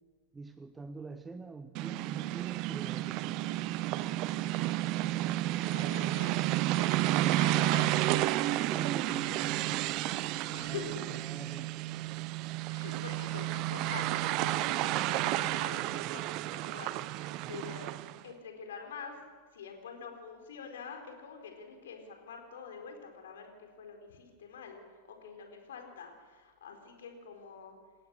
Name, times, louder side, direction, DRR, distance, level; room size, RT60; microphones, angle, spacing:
voice 1, 0.3-3.4 4.0-4.6 8.7-10.8 11.1-11.9 17.4-17.6, right 3 dB, 10° right, 11 dB, 0.9 m, -46 dB
sound 1, 1.7-18.2, right 16 dB, 40° right, 0.7 m, -31 dB
voice 2, 5.5-8.3 10.5-11.1 12.7-17.9 18.2-19.2 19.5-27.8, left 5 dB, 60° left, 3 dB, 4.4 m, -46 dB
28.0 x 16.0 x 6.5 m, 1.5 s
figure-of-eight pair, 90°, 0 cm